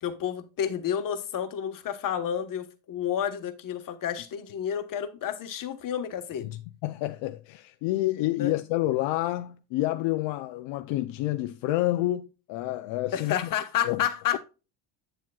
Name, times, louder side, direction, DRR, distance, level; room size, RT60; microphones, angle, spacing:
voice 1, 0.0-6.5 8.4-8.5 13.1-14.4, left 9 dB, 45° left, 1.4 m, -30 dB
voice 2, 6.4-13.3 13.8-14.0, left 16 dB, 70° left, 0.7 m, -29 dB
9.0 x 7.4 x 2.4 m
cardioid pair, 135°, 46 cm